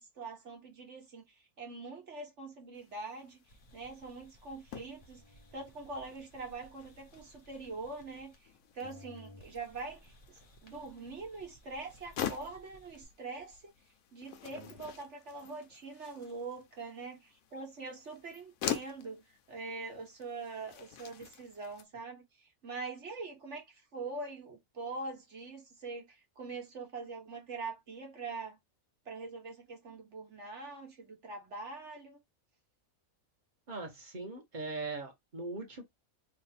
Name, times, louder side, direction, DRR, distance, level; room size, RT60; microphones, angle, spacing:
voice 1, 0.0-3.4 3.7-5.2 5.5-13.7 14.1-28.6 29.0-32.2, right 3 dB, 55° right, 1.5 m, -44 dB
sound 1, 2.7-21.8, left 9 dB, 80° left, 1.1 m, -46 dB
sound 2, 3.5-8.5 8.8-13.0, left 1 dB, 30° left, 1.0 m, -59 dB
voice 2, 33.7-35.8, right 3 dB, 35° right, 1.3 m, -40 dB
3.3 x 2.5 x 4.1 m
omnidirectional pair, 1.5 m